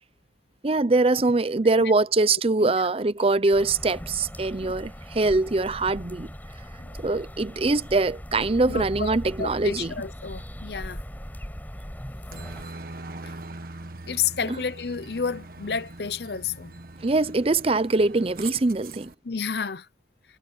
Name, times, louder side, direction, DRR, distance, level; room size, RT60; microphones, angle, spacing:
voice 1, 0.6-6.3 7.0-9.9 14.5-14.6 17.0-19.1, right 3 dB, 35° right, 0.6 m, -23 dB
sound 1, 3.5-12.6, equal, 10° left, 5.4 m, -39 dB
voice 2, 8.7-11.0 14.1-16.7 19.2-19.9, left 6 dB, 65° left, 0.8 m, -31 dB
Aircraft, 12.3-19.1, right 3 dB, 55° right, 1.5 m, -41 dB
head